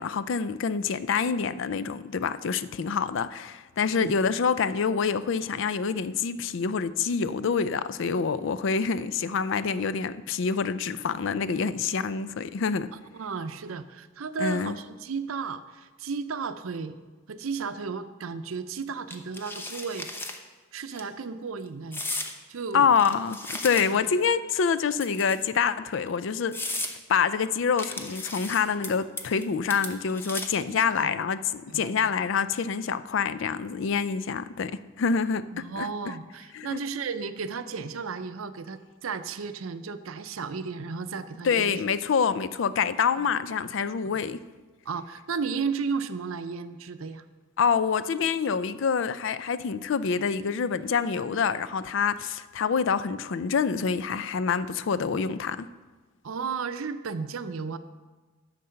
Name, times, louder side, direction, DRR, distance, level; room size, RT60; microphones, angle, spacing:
voice 1, 0.0-12.9 14.4-14.8 22.7-35.9 36.5-36.8 41.4-44.4 47.6-55.7, left 6 dB, 65° left, 0.4 m, -26 dB
voice 2, 13.1-17.0 17.3-20.1 20.7-22.0 22.5-22.9 23.9-24.0 30.7-31.1 31.7-32.1 35.5-41.8 43.2-43.3 44.9-47.3 56.2-57.8, right 5 dB, 90° right, 0.6 m, -34 dB
sound 1, 19.1-20.4 20.8-21.0 21.9-22.3 23.0-24.1 25.0-25.6 26.1-26.2 26.5-26.9 27.8-28.9 29.2-29.5 29.7-30.6, left 2 dB, 10° left, 0.7 m, -35 dB
10.0 x 6.7 x 5.6 m
head